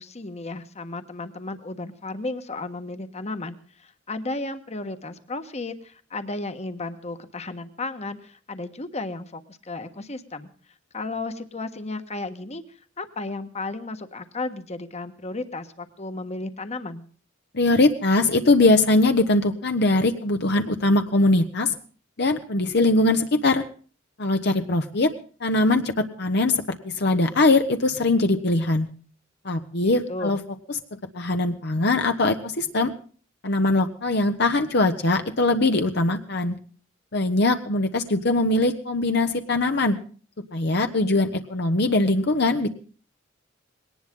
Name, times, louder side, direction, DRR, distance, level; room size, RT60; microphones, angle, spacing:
voice 1, 0.0-10.5 10.9-12.6 13.0-17.0 29.8-30.4, left 2 dB, 35° left, 9 dB, 1.4 m, -34 dB
voice 2, 17.5-21.7 22.2-23.6 24.2-25.1 25.4-28.9 29.4-30.4 30.7-30.8 31.1-32.9 33.4-36.6 37.1-40.0 40.5-42.7, left 2 dB, 60° left, 6 dB, 1.1 m, -21 dB
20.0 x 18.5 x 3.8 m, 0.42 s
head